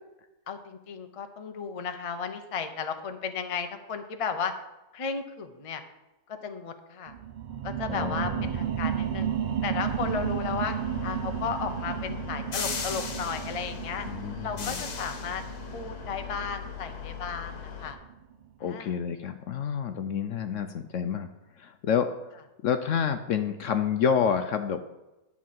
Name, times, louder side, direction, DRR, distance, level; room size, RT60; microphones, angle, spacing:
voice 1, 0.5-4.5 4.9-5.8 6.3-7.1 7.6-9.3 9.6-10.8 11.0-14.1 14.4-15.4 15.7-18.0 18.6-18.9, left 6 dB, 35° left, 7 dB, 0.6 m, -34 dB
sound 1, 7.1-18.2 18.7-18.8, right 9 dB, 85° right, 0.4 m, -33 dB
voice 2, 7.9-8.6 14.1-14.9 18.6-21.3 21.6-22.1 22.6-24.8, left 7 dB, 65° left, 8 dB, 0.9 m, -28 dB
sound 2, 9.8-17.9, left 7 dB, 80° left, 1.6 m, -38 dB
11.0 x 4.7 x 7.5 m, 1.0 s
omnidirectional pair, 1.6 m